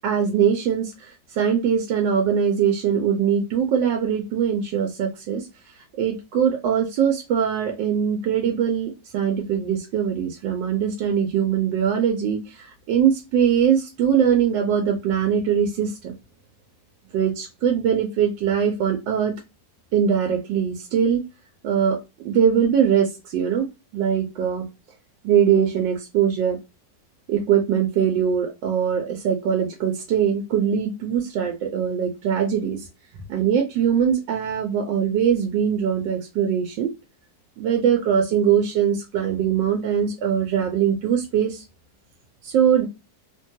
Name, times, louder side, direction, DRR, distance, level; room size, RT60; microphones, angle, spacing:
voice 1, 0.0-5.5 6.0-16.1 17.1-19.3 19.9-21.2 21.6-22.0 22.2-23.7 23.9-24.7 25.2-26.6 27.3-32.9 33.3-36.9 37.6-41.6 42.4-42.9, right 8 dB, 80° right, 3 dB, 1.3 m, -22 dB
3.2 x 2.2 x 2.6 m, 0.26 s
omnidirectional pair, 2.0 m